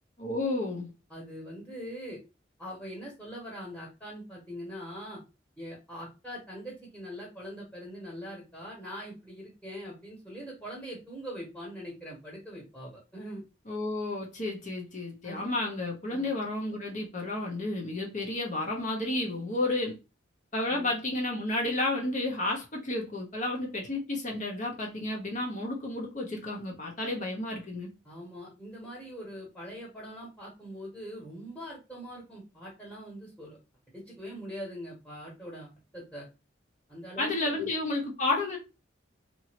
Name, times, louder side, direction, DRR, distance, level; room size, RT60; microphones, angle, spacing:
voice 1, 0.2-0.9 13.7-20.0 20.5-27.9 37.2-38.6, left 2 dB, 40° left, 0.8 m, -31 dB
voice 2, 1.1-2.2 2.6-5.2 5.6-13.4 15.2-15.4 16.1-16.3 20.7-20.9 28.0-33.6 33.9-36.3 36.9-37.7, equal, 5° left, 1.2 m, -42 dB
2.9 x 2.7 x 2.9 m
head